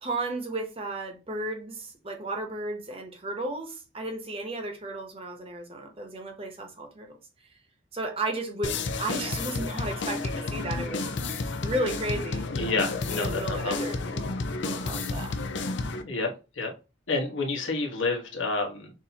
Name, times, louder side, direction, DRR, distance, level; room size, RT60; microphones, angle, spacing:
voice 1, 0.0-7.2 7.9-11.1 11.6-14.3 14.6-15.3, right 2 dB, 30° right, 1.0 m, -34 dB
sound 1, 8.6-16.0, left 3 dB, 70° left, 0.6 m, -31 dB
voice 2, 12.5-13.9 16.0-16.3 16.5-16.7 17.1-18.9, left 3 dB, 90° left, 1.4 m, -29 dB
6.4 x 2.7 x 2.9 m
head